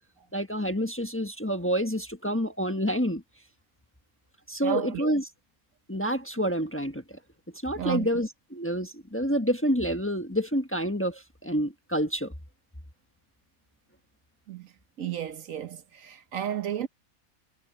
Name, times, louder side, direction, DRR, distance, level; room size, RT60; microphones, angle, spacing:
voice 1, 0.3-3.2 4.5-5.3 5.9-7.2 7.6-12.3, equal, 10° left, 1.2 m, -28 dB
voice 2, 4.6-5.1 7.8-8.1 14.5-14.7 15.0-16.9, right 10 dB, 70° right, 1.3 m, -33 dB
omnidirectional pair, 1.5 m